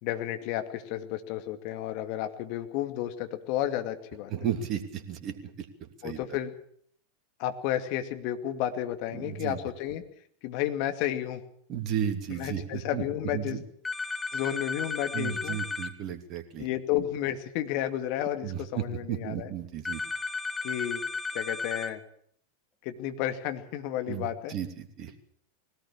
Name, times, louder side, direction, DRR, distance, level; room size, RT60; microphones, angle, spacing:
voice 1, 0.0-4.3 6.0-6.5 7.4-10.0 10.4-11.4 12.3-13.6 14.3-15.6 16.6-19.5 20.6-21.0 21.3-22.0 22.8-24.5, left 12 dB, 50° left, 7 dB, 2.3 m, -32 dB
voice 2, 4.3-6.2 9.1-9.6 11.7-13.0 13.3-13.6 15.1-16.7 18.4-20.0 24.1-25.1, right 9 dB, 40° right, 7 dB, 2.9 m, -34 dB
sound 1, 13.8-15.9 19.9-21.9, left 4 dB, 15° left, 1.8 m, -34 dB
21.0 x 18.0 x 7.3 m, 0.65 s
figure-of-eight pair, 90°, 0 cm